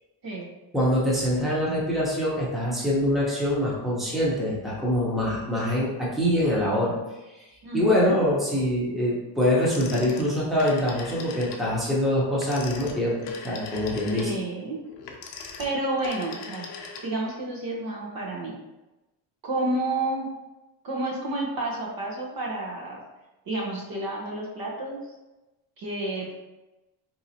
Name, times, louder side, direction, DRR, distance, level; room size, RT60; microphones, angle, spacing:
voice 1, 0.7-7.0 7.3-7.4 7.7-14.3, left 1 dB, ahead, -6 dB, 0.9 m, -24 dB
voice 2, 7.6-8.2 14.1-14.8 15.6-16.7 17.0-18.6 19.4-20.3 20.8-23.0 23.5-25.0 25.8-26.4, right 2 dB, 45° right, -2 dB, 0.9 m, -30 dB
Telephone, 9.6-11.7 12.3-17.4, left 4 dB, 55° left, 0.7 m, -40 dB
3.9 x 2.8 x 2.8 m, 1.0 s
cardioid pair, 120°, 49 cm